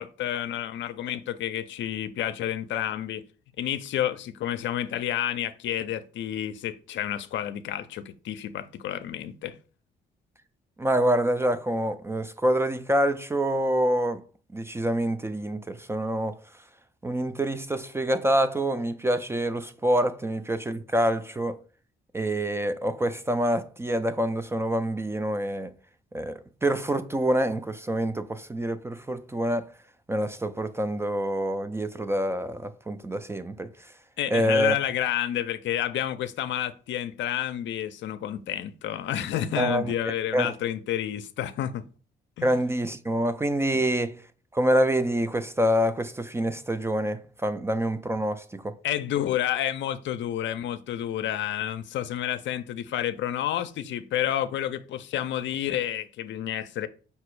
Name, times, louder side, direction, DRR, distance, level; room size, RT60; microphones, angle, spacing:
voice 1, 0.0-3.2 3.6-9.6 34.2-41.8 42.4-42.5 48.8-56.9, left 11 dB, 70° left, 0.5 m, -30 dB
voice 2, 10.8-14.2 14.5-16.4 17.0-21.6 22.1-25.7 26.1-26.3 26.6-29.7 30.1-33.7 34.3-34.8 39.6-39.9 40.3-40.5 42.4-44.2 44.5-48.8, right 1 dB, 15° right, 0.3 m, -26 dB
5.4 x 2.0 x 4.5 m
cardioid pair, 90°, 20 cm